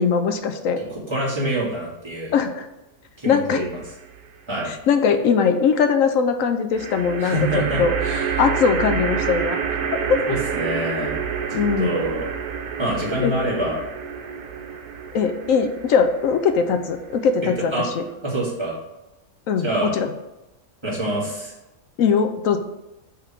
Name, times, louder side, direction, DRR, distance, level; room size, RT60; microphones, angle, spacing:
voice 1, 0.0-0.8 2.3-2.7 3.3-3.6 4.7-8.0 8.4-9.6 10.1-10.2 11.5-12.0 13.2-13.3 15.1-18.0 19.5-20.1 22.0-22.6, left 6 dB, 70° left, 7 dB, 1.0 m, -20 dB
voice 2, 0.8-2.4 3.2-3.8 4.5-4.7 7.2-8.3 10.3-11.2 11.8-12.3 12.8-13.8 17.6-17.9 18.2-18.8 19.6-19.9 20.8-21.5, right 1 dB, 20° right, -7 dB, 2.2 m, -26 dB
sound 1, 3.6-4.3 6.7-18.1, right 7 dB, 85° right, 1.2 m, -29 dB
5.6 x 3.5 x 5.7 m, 0.94 s
omnidirectional pair, 1.5 m